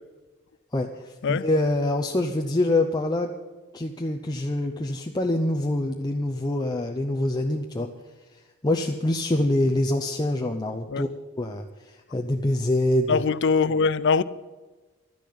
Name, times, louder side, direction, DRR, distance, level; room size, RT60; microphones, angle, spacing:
voice 1, 0.7-3.3 3.7-7.9 8.6-11.1 11.4-13.2, left 1 dB, 20° left, 0.7 m, -25 dB
voice 2, 13.1-14.2, left 5 dB, 60° left, 0.5 m, -22 dB
12.0 x 10.0 x 8.5 m
head